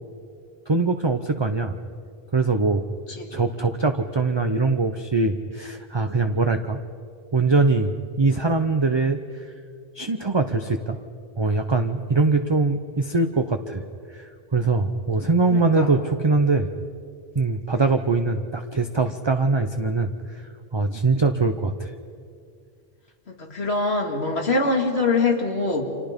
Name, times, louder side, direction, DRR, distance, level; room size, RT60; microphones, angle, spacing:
voice 1, 0.7-1.8 2.3-2.8 3.3-6.8 7.3-7.9 8.2-9.5 9.9-11.0 11.4-13.8 14.1-16.7 17.3-20.4 20.7-21.9, right 3 dB, 30° right, 6 dB, 0.8 m, -22 dB
voice 2, 15.5-16.0 17.9-18.0 23.3-25.8, left 3 dB, 90° left, 2 dB, 2.7 m, -24 dB
30.0 x 26.0 x 5.3 m, 2.3 s
omnidirectional pair, 1.1 m